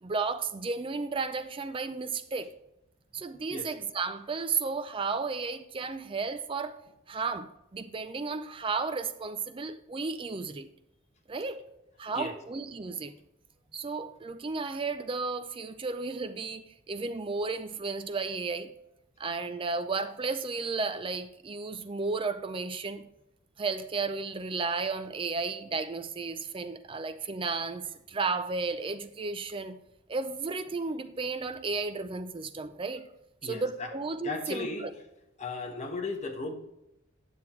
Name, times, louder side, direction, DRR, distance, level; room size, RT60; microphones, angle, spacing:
voice 1, 0.0-2.5 3.1-6.8 7.1-10.7 11.3-11.6 12.0-13.1 13.7-18.7 19.2-23.1 23.6-29.8 30.1-33.1 33.4-34.9, right 4 dB, 25° right, 0.4 m, -33 dB
voice 2, 34.2-34.9 35.4-36.5, left 3 dB, 35° left, 1.2 m, -35 dB
9.5 x 7.2 x 3.1 m
head